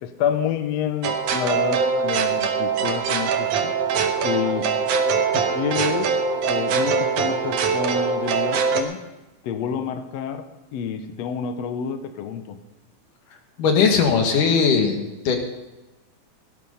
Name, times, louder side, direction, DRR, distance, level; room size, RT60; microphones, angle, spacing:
voice 1, 0.0-3.7 4.2-4.7 5.3-6.1 6.5-9.0 9.4-10.4 10.7-12.6, left 8 dB, 65° left, 8 dB, 1.9 m, -28 dB
sound 1, 1.0-8.8, right 5 dB, 80° right, 2.8 m, -22 dB
voice 2, 13.6-15.4, left 5 dB, 90° left, 3 dB, 3.4 m, -19 dB
17.5 x 10.5 x 5.5 m, 1.1 s
omnidirectional pair, 3.5 m